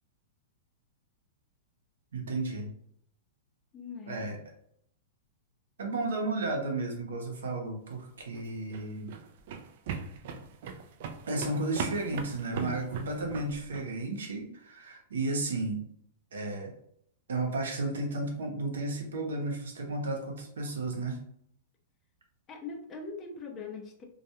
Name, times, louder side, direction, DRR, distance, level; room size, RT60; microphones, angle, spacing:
voice 1, 2.1-2.7 4.1-4.4 5.8-9.1 11.3-15.8 16.3-16.7 17.3-21.2, right 2 dB, 90° right, 1 dB, 0.7 m, -33 dB
voice 2, 3.7-4.2 12.6-13.0 22.5-24.0, left 4 dB, 25° left, 2 dB, 0.5 m, -42 dB
sound 1, 8.2-13.9, right 6 dB, 60° right, 0.3 m, -39 dB
2.3 x 2.2 x 2.8 m, 0.68 s
hypercardioid pair, 135°, 0 cm